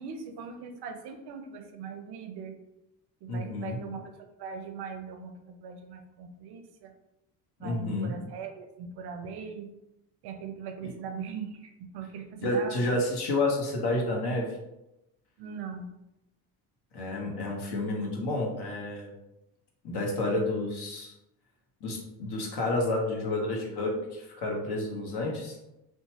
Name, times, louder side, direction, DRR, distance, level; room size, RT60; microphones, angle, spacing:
voice 1, 0.0-2.5 3.2-4.1 4.4-6.9 7.6-9.7 10.2-12.9 15.4-15.9, right 6 dB, 55° right, 6 dB, 0.5 m, -40 dB
voice 2, 3.3-3.8 7.6-8.1 10.8-10.9 12.4-14.5 16.9-19.1 19.8-21.1 21.8-25.5, left 2 dB, 50° left, 0 dB, 1.0 m, -30 dB
2.8 x 2.2 x 2.8 m, 0.89 s
hypercardioid pair, 65°, 49 cm